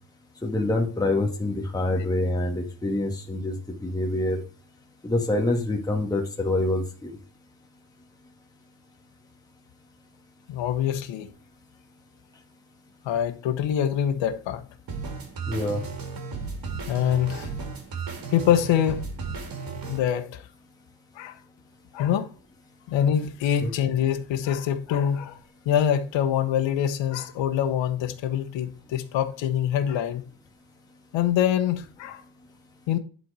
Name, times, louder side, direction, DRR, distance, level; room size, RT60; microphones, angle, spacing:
voice 1, 0.4-4.4 5.0-7.2 15.5-15.8 23.6-23.7, left 2 dB, 10° left, 1.7 m, -26 dB
voice 2, 10.5-11.3 13.0-14.6 16.9-17.5 18.3-19.0 19.8-20.4 21.1-21.4 21.9-22.3 22.9-25.4 25.6-30.2 31.1-32.2 32.9-33.0, left 10 dB, 80° left, 1.2 m, -25 dB
sound 1, 14.9-20.0, right 4 dB, 50° right, 2.3 m, -34 dB
11.0 x 4.4 x 4.8 m
cardioid pair, 150°, 45 cm